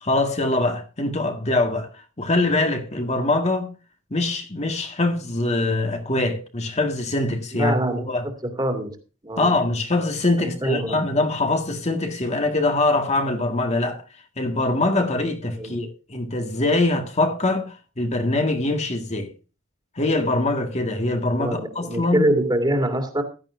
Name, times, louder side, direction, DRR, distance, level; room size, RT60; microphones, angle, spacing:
voice 1, 0.0-1.9 2.2-3.7 4.1-8.3 9.4-14.0 14.4-19.3 20.0-22.2, left 2 dB, 35° left, 1.9 m, -23 dB
voice 2, 7.5-8.0 8.4-9.0 9.2-9.5 10.4-11.0 15.6-15.8 21.3-23.2, right 1 dB, 20° right, 2.6 m, -24 dB
15.5 x 12.0 x 2.6 m
head